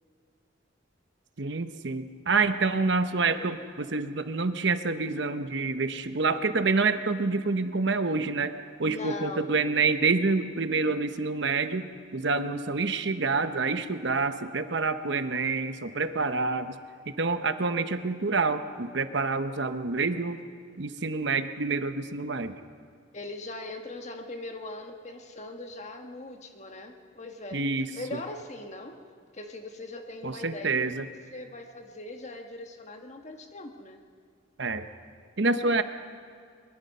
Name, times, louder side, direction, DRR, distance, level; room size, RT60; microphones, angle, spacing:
voice 1, 1.4-8.5 8.8-16.7 17.1-20.4 20.8-22.6 27.5-28.2 30.2-31.1 34.6-34.9 35.4-35.8, right 4 dB, 60° right, 10 dB, 0.9 m, -27 dB
voice 2, 8.8-9.6 23.1-27.7 27.9-29.0 29.3-30.9 31.3-34.0, left 2 dB, 35° left, 4 dB, 1.5 m, -40 dB
22.5 x 21.5 x 5.5 m, 2.2 s
head